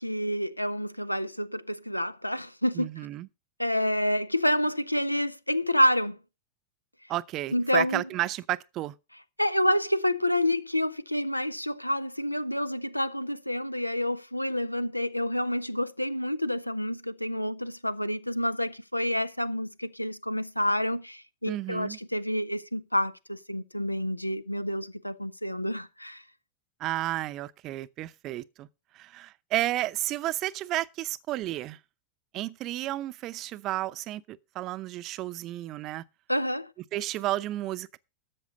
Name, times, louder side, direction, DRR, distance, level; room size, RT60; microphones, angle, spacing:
voice 1, 0.0-2.9 3.6-6.2 7.5-8.0 9.4-26.2 36.3-36.7, left 1 dB, 90° left, 0.5 m, -28 dB
voice 2, 2.7-3.3 7.1-8.9 21.5-22.0 26.8-28.7 28.9-31.8 32.3-36.0 36.9-38.0, right 15 dB, 35° right, 0.6 m, -32 dB
13.5 x 7.2 x 5.2 m
figure-of-eight pair, 90°, 0 cm